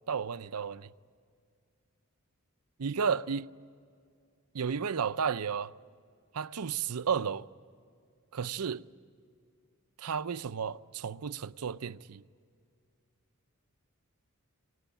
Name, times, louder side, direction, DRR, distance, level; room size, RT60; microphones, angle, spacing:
voice 1, 0.1-0.9 2.8-3.5 4.5-5.7 6.3-7.5 8.3-8.9 10.0-12.2, right 6 dB, 85° right, 0.6 m, -33 dB
26.0 x 19.0 x 9.0 m
head